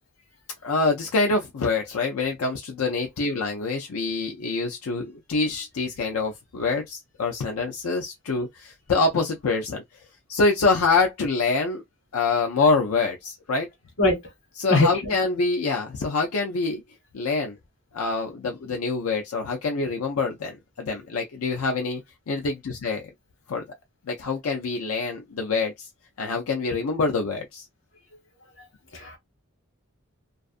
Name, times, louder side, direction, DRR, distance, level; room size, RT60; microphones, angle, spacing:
voice 1, 0.6-9.8 10.3-11.8 12.1-13.7 14.6-16.8 17.1-17.6 17.9-22.0 22.3-23.1 23.5-23.6 24.0-25.9 26.2-27.7, left 3 dB, 85° left, 0.5 m, -25 dB
voice 2, 14.7-15.1 28.9-29.2, left 2 dB, 60° left, 1.1 m, -21 dB
2.4 x 2.4 x 2.4 m
head